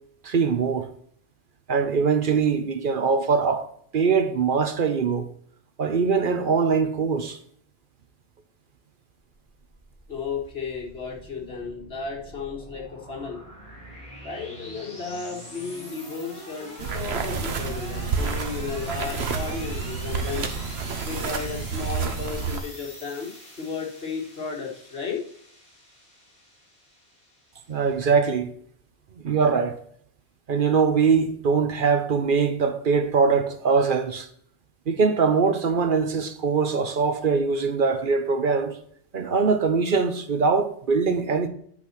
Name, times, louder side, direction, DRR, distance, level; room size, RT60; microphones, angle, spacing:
voice 1, 0.2-0.9 1.7-3.7 3.9-5.3 5.8-7.4 27.7-28.5 29.2-29.8 30.5-34.3 34.9-38.8 39.1-41.5, right 5 dB, 55° right, 0.8 m, -22 dB
sound 1, 9.3-28.0, equal, 30° left, 3.6 m, -44 dB
voice 2, 10.1-13.4 14.2-20.5 21.0-25.2, left 5 dB, 65° left, 2.1 m, -34 dB
sound 2, 16.8-22.6, right 5 dB, 70° right, 1.2 m, -29 dB
8.6 x 4.2 x 5.8 m
omnidirectional pair, 1.1 m